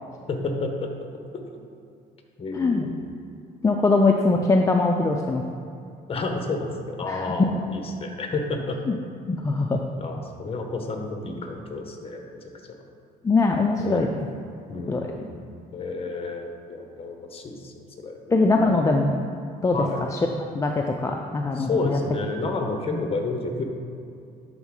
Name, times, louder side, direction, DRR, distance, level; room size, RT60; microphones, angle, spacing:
voice 1, 0.3-0.9 1.3-1.4 2.4-3.0 6.1-8.8 10.0-12.2 12.7-12.8 13.8-14.0 14.7-15.4 15.7-18.7 19.7-20.0 21.5-23.6, left 3 dB, 35° left, 3 dB, 1.0 m, -31 dB
voice 2, 2.5-2.9 3.6-5.4 7.1-7.3 8.9-9.0 9.3-9.8 13.2-14.1 14.9-15.1 18.3-19.2 19.6-20.2 20.5-22.0 22.9-23.0, left 3 dB, 20° left, 2 dB, 0.4 m, -22 dB
11.0 x 4.1 x 3.7 m, 2.5 s
cardioid pair, 110°, 17 cm